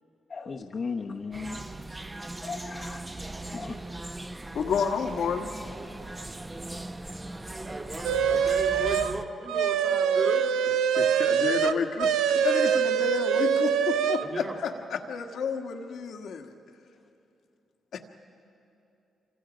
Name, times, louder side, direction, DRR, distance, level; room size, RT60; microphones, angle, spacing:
voice 1, 0.3-1.6 2.4-3.0 3.4-3.7 5.6-5.7, left 4 dB, 45° left, 0 dB, 1.1 m, -36 dB
sound 1, 1.3-9.3, right 2 dB, 20° right, 0.9 m, -39 dB
voice 2, 4.5-5.5 11.0-16.5 17.9-18.0, left 6 dB, 75° left, 5 dB, 1.6 m, -30 dB
voice 3, 7.6-10.4 14.2-14.6, right 3 dB, 40° right, -3 dB, 2.5 m, -35 dB
sound 2, 8.0-9.1 9.5-14.3, right 7 dB, 90° right, 0.6 m, -24 dB
27.0 x 26.0 x 5.2 m, 2.7 s
cardioid pair, 80°, 0 cm